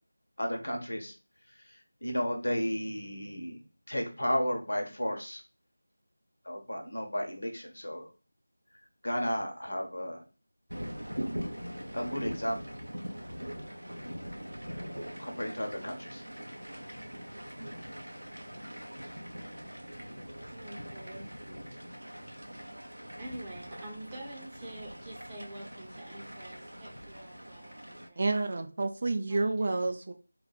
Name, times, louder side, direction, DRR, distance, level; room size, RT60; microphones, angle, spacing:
voice 1, 0.4-1.1 2.0-3.6 3.9-5.4 6.4-8.1 9.0-10.2 11.9-12.6 15.2-16.2, equal, 65° left, 3 dB, 1.3 m, -33 dB
sound 1, 10.7-28.1, equal, 85° right, 0.9 m, -42 dB
voice 2, 20.5-21.3 23.1-28.2 29.3-29.9, right 1 dB, 10° right, -3 dB, 1.0 m, -46 dB
voice 3, 28.2-30.1, right 3 dB, 40° right, 6 dB, 0.5 m, -29 dB
4.6 x 2.5 x 4.1 m, 0.33 s
figure-of-eight pair, 170°, 0 cm